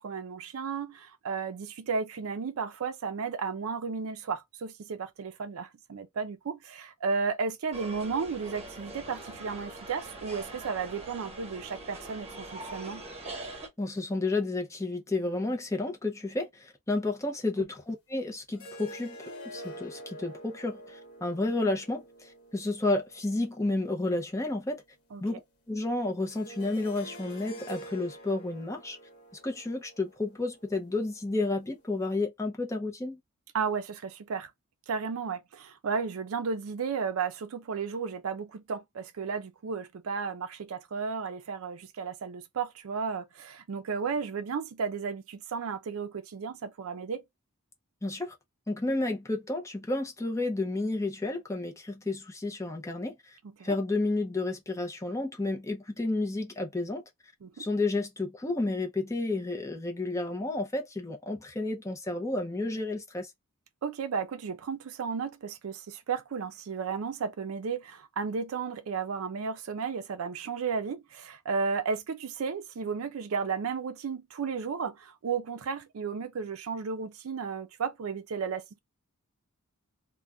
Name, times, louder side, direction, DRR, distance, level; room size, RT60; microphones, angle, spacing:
voice 1, 0.0-13.0 25.1-25.2 33.5-34.5 34.9-47.2 53.6-53.7 57.4-57.6 63.8-78.8, right 5 dB, 70° right, 0.4 m, -34 dB
sound 1, 7.7-13.7, right 2 dB, 30° right, 1.2 m, -43 dB
voice 2, 13.8-24.8 25.2-25.4 25.7-29.0 29.4-33.2 48.0-48.3 48.7-53.4 53.6-57.0 57.6-63.3, left 2 dB, 15° left, 0.6 m, -31 dB
sound 2, 18.5-24.5 26.3-31.5, right 1 dB, 80° left, 0.9 m, -47 dB
2.4 x 2.2 x 3.4 m
head